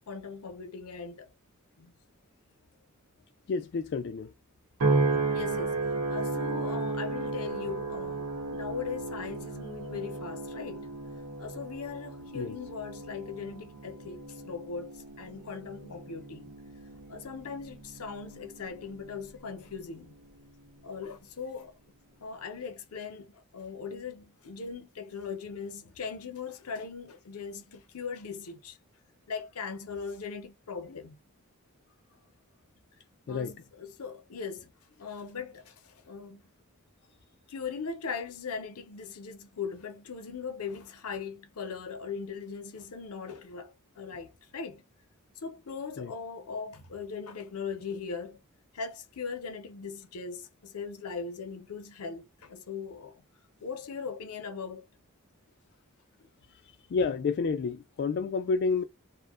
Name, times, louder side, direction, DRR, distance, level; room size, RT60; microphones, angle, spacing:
voice 1, 0.1-1.3 1.8-1.9 5.3-10.9 11.4-16.5 17.1-20.2 20.8-21.8 22.2-28.8 29.3-31.2 33.3-34.7 35.0-36.4 37.5-44.8 45.4-48.4 48.7-53.2 53.6-54.8, left 5 dB, 85° left, 0.6 m, -39 dB
voice 2, 3.5-4.3 12.3-12.6 33.3-33.5 46.0-46.1 56.9-58.8, left 4 dB, 50° left, 0.3 m, -29 dB
sound 1, 4.8-19.3 19.8-20.2, right 3 dB, 85° right, 0.9 m, -34 dB
2.5 x 2.1 x 2.3 m
head